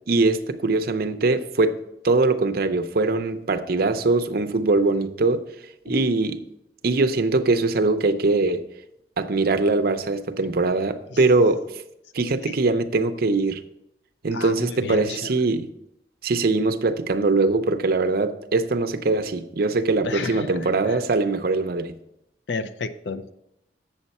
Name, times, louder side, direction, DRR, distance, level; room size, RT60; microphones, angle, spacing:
voice 1, 0.1-5.5 5.9-6.4 6.8-8.6 9.2-11.6 12.1-13.6 14.2-15.7 16.2-22.0, right 3 dB, 55° right, 0.6 m, -22 dB
voice 2, 14.3-15.4 20.0-21.0 22.5-23.3, left 4 dB, 80° left, 0.5 m, -32 dB
8.1 x 7.1 x 4.2 m
head